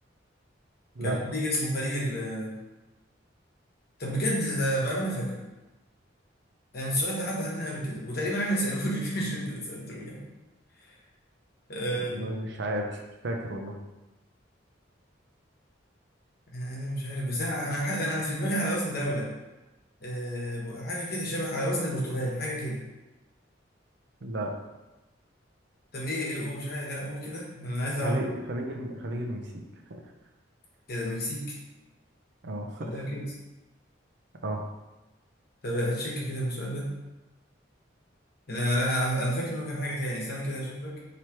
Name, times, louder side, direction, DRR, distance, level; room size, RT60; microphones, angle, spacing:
voice 1, 1.0-2.5 4.0-5.4 6.7-10.3 10.9-11.0 11.7-12.3 16.5-19.3 20.0-22.8 25.9-28.2 30.9-31.6 32.8-33.3 35.6-37.0 38.5-41.0, equal, 55° left, -3 dB, 1.1 m, -30 dB
voice 2, 11.9-13.8 24.2-24.5 28.0-29.6 32.4-33.1 34.4-34.6, right 1 dB, 65° right, 2 dB, 0.6 m, -33 dB
4.7 x 2.9 x 3.0 m, 1.1 s
head